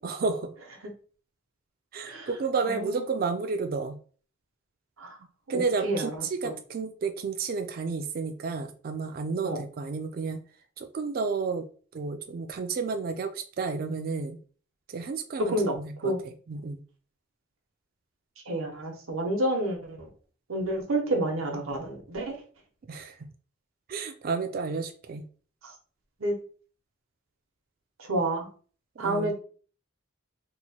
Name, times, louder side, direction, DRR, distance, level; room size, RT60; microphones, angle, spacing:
voice 1, 0.0-0.5 1.9-4.0 5.5-10.4 10.8-11.7 11.9-14.4 14.9-16.8 22.9-23.3 23.9-25.3 29.0-29.3, right 4 dB, 45° right, 6 dB, 0.3 m, -31 dB
voice 2, 2.6-3.2 5.0-5.2 5.5-6.5 9.4-9.6 15.5-15.8 16.0-16.2 18.5-20.1 20.5-22.4 25.6-25.7 26.2-26.3 28.0-28.5 29.0-29.3, right 1 dB, 90° right, 1 dB, 0.8 m, -29 dB
2.9 x 2.2 x 4.1 m, 0.42 s
head